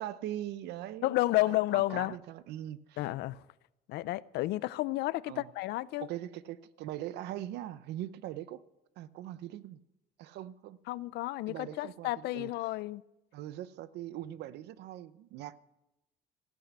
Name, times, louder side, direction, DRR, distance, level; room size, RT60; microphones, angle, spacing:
voice 1, 0.0-1.1 1.4-3.0 5.3-5.5 6.0-8.6 9.0-9.8 10.2-10.8 11.5-12.5 13.3-15.6, right 13 dB, 80° right, 0.7 m, -41 dB
voice 2, 1.0-2.2 3.0-3.4 3.9-6.1 10.9-13.0, left 18 dB, 80° left, 0.5 m, -31 dB
14.5 x 8.1 x 8.5 m
cardioid pair, 110°, 17 cm